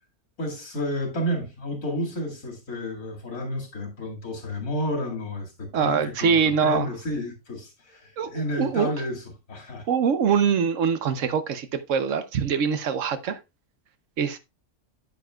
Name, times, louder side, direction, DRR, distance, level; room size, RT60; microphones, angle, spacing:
voice 1, 0.4-9.9, left 1 dB, 85° left, 2.6 m, -31 dB
voice 2, 5.7-6.9 8.2-8.9 9.9-13.4 14.2-14.4, right 6 dB, 65° right, 1.1 m, -23 dB
9.3 x 8.6 x 2.3 m
omnidirectional pair, 1.5 m